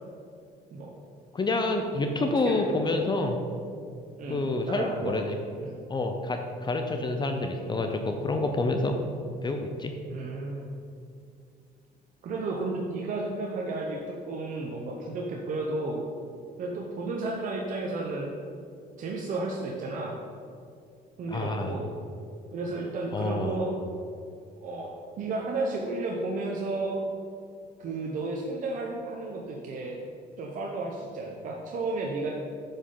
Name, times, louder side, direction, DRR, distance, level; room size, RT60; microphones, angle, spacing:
voice 1, 1.3-3.4 4.3-5.4 5.9-9.0 9.4-9.9 21.3-21.8 23.1-23.6, left 2 dB, 25° left, 5 dB, 0.6 m, -28 dB
voice 2, 2.4-3.0 4.2-4.4 4.7-5.1 5.6-5.8 10.1-10.7 12.2-16.1 16.6-18.3 19.0-20.2 21.2-21.9 22.5-23.7 24.6-27.0 27.8-30.0 30.4-32.3, right 2 dB, 50° right, -1 dB, 0.8 m, -32 dB
8.1 x 5.3 x 3.9 m, 2.4 s
cardioid pair, 110°, 17 cm